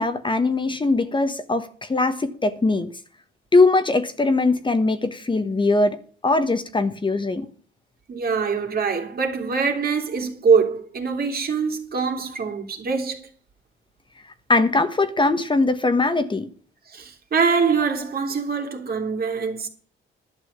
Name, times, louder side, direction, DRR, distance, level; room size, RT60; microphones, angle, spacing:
voice 1, 0.0-2.9 3.5-7.5 14.5-16.5, left 3 dB, 25° left, 1.3 m, -21 dB
voice 2, 8.1-13.2 16.9-19.7, right 5 dB, 50° right, 2.8 m, -23 dB
11.5 x 6.2 x 8.5 m
cardioid pair, 90°, 20 cm